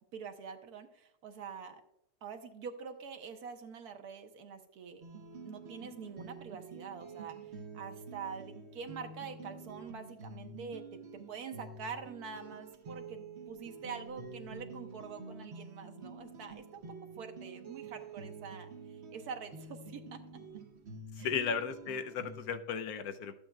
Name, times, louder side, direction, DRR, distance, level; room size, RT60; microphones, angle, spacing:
voice 1, 0.1-1.8 2.2-5.0 5.4-7.4 7.7-13.2 13.5-20.2 21.2-21.3, right 6 dB, 70° right, 6 dB, 1.3 m, -45 dB
sound 1, 5.0-22.6, right 4 dB, 50° right, 1.0 m, -48 dB
voice 2, 21.1-23.3, left 6 dB, 75° left, 9 dB, 1.0 m, -35 dB
13.0 x 8.6 x 2.3 m, 0.80 s
omnidirectional pair, 1.7 m